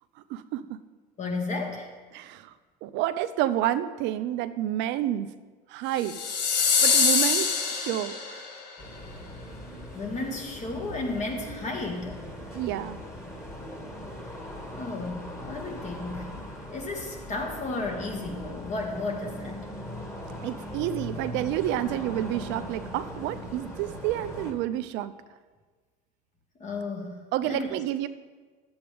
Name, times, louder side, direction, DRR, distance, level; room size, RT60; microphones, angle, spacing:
voice 1, 0.3-0.8 2.1-2.5 2.8-5.3 5.7-6.2 6.8-8.4 12.5-13.0 20.4-25.1 27.3-28.1, right 12 dB, 60° right, 12 dB, 0.4 m, -29 dB
voice 2, 1.2-1.9 9.9-12.2 14.7-16.3 16.7-19.7 26.6-27.7, left 2 dB, 35° left, 2 dB, 1.9 m, -33 dB
sound 1, 6.0-8.5, left 5 dB, 90° left, 1.1 m, -24 dB
sound 2, 8.8-24.5, equal, 15° left, 2.1 m, -40 dB
10.0 x 7.9 x 3.4 m, 1.4 s
hypercardioid pair, 80°, 21 cm